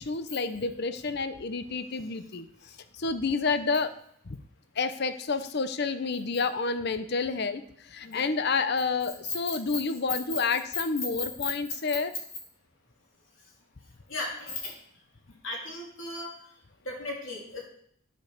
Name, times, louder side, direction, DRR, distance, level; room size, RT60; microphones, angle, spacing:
voice 1, 0.0-2.5 3.0-3.9 4.3-4.4 4.8-12.1, left 4 dB, 55° left, 11 dB, 0.7 m, -29 dB
voice 2, 14.1-14.7 15.4-16.3 16.8-17.6, left 2 dB, 80° left, -2 dB, 3.2 m, -36 dB
9.3 x 5.3 x 6.5 m, 0.67 s
head